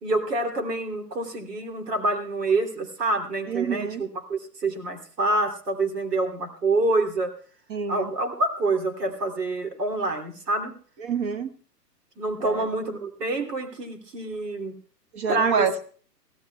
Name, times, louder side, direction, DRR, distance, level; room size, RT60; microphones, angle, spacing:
voice 1, 0.0-7.3 7.9-10.7 12.2-14.8 15.3-15.7, right 2 dB, 75° right, 4 dB, 3.0 m, -27 dB
voice 2, 3.5-4.0 7.7-8.1 11.0-11.5 12.4-12.7 15.1-15.8, right 6 dB, 30° right, 10 dB, 1.3 m, -27 dB
23.0 x 15.5 x 2.3 m, 0.43 s
figure-of-eight pair, 120°, 49 cm